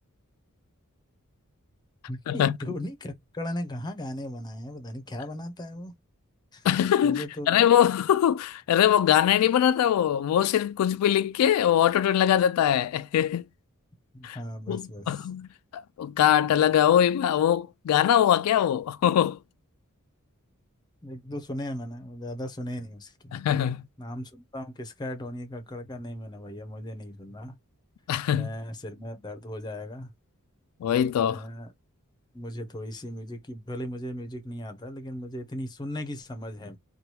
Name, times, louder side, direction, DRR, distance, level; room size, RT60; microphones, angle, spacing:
voice 1, 2.1-5.9 6.5-6.7 7.0-7.6 14.1-15.3 21.0-23.3 24.0-27.6 28.3-30.1 31.3-31.7 32.3-36.8, left 1 dB, 20° left, 0.6 m, -37 dB
voice 2, 6.6-13.4 14.2-14.4 14.7-19.4 23.3-23.8 28.1-28.5 30.8-31.4, left 10 dB, 90° left, 0.3 m, -22 dB
2.9 x 2.2 x 3.0 m
head